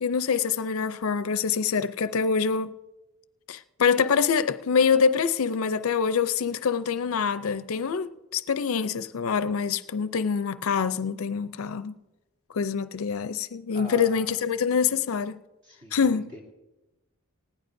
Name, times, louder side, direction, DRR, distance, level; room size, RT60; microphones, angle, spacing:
voice 1, 0.0-2.7 3.5-12.0 12.5-15.4 15.9-16.3, left 6 dB, 75° left, 0.5 m, -25 dB
voice 2, 13.7-14.4 15.6-16.4, equal, 35° right, 2.7 m, -42 dB
19.5 x 15.5 x 2.6 m
head